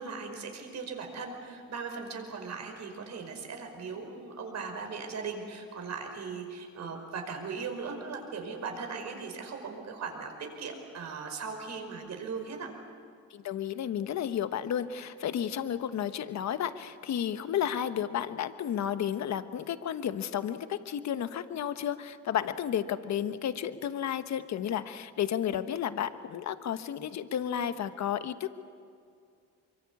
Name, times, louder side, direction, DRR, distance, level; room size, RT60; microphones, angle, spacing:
voice 1, 0.0-12.7, right 5 dB, 65° right, 4 dB, 5.3 m, -38 dB
voice 2, 13.3-28.5, left 9 dB, 65° left, 11 dB, 1.2 m, -32 dB
24.5 x 24.0 x 8.5 m, 2.3 s
cardioid pair, 90°, 30 cm